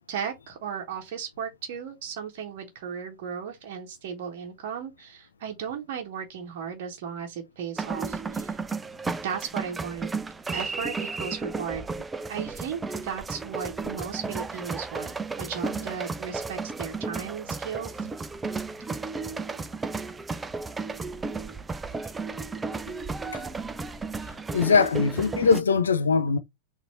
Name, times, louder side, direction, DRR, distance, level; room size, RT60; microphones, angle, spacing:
voice 1, 0.1-8.6 9.2-10.1 10.5-11.8 12.3-18.1, right 7 dB, 50° right, 0.9 m, -35 dB
sound 1, 7.8-25.6, right 4 dB, 15° right, 0.4 m, -33 dB
voice 2, 24.5-26.4, left 5 dB, 70° left, 0.4 m, -21 dB
4.1 x 2.6 x 3.9 m
figure-of-eight pair, 90°, 0 cm